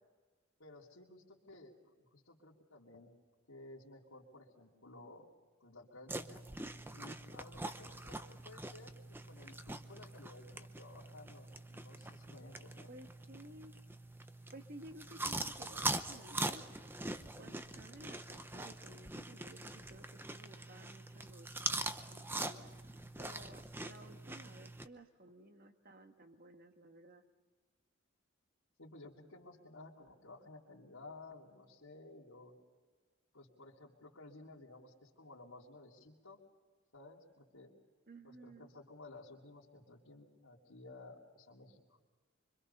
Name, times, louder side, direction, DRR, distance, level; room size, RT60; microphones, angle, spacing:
voice 1, 0.6-3.1 3.5-5.3 5.6-6.4 6.9-12.9 28.8-32.5 33.3-36.4 36.9-37.7 38.2-42.0, left 2 dB, 90° left, -8 dB, 3.0 m, -55 dB
sound 1, 6.1-24.9, right 2 dB, 10° right, 0.7 m, -43 dB
voice 2, 12.9-13.8 14.5-16.7 17.4-22.7 23.2-27.2 38.1-38.7, right 1 dB, 45° right, 6 dB, 1.5 m, -55 dB
25.5 x 24.5 x 5.6 m, 1.4 s
head